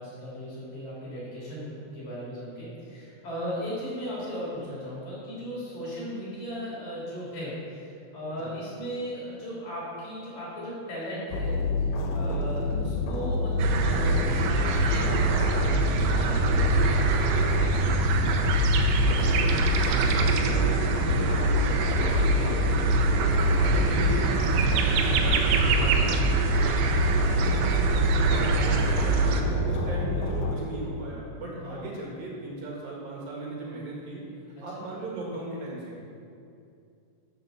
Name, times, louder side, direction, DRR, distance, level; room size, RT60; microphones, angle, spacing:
voice 1, 0.0-17.4 21.9-22.1 26.5-26.9 31.6-31.9 34.7-34.8, equal, 45° left, -7 dB, 4.5 m, -37 dB
sound 1, 11.3-30.6, left 2 dB, 75° left, 3.2 m, -27 dB
sound 2, 13.6-29.4, right 3 dB, 85° right, 2.9 m, -25 dB
voice 2, 19.1-19.5 19.8-26.3 27.3-34.2 34.6-36.0, right 1 dB, 65° right, -3 dB, 3.2 m, -37 dB
12.5 x 6.5 x 7.0 m, 2.5 s
omnidirectional pair, 4.8 m